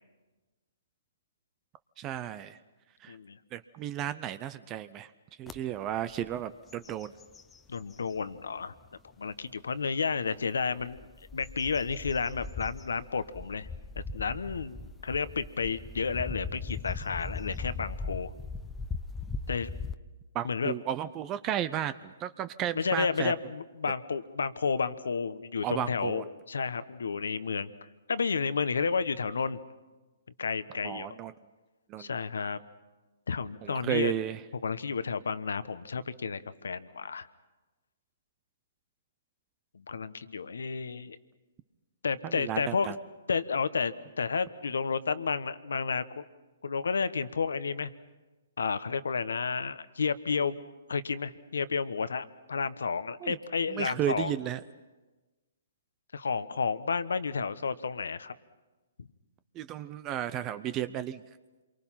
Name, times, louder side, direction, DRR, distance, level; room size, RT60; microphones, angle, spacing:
voice 1, 2.0-2.6 3.0-3.2 3.5-5.1 5.4-7.1 20.3-23.3 25.6-26.3 30.8-31.3 31.9-32.2 33.6-34.4 42.2-43.0 53.2-53.4 53.7-54.6 59.5-61.2, right 11 dB, 25° right, 14 dB, 0.7 m, -33 dB
voice 2, 3.1-3.4 7.7-8.7 9.2-11.1 11.3-13.7 14.1-18.3 19.5-19.7 20.4-20.7 22.7-27.7 28.1-29.6 30.4-31.2 32.0-32.6 33.3-34.1 34.6-37.3 39.7-41.2 42.0-42.9 43.3-46.2 46.6-47.9 48.6-50.6 50.9-54.3 56.1-58.3, left 5 dB, 80° left, 14 dB, 1.1 m, -31 dB
sound 1, 5.5-5.6 6.1-6.4 6.7-8.2 8.8-8.9 10.6-20.0, left 4 dB, 10° left, 0.8 m, -39 dB
27.5 x 23.5 x 5.8 m, 1.2 s
hypercardioid pair, 140°, 0 cm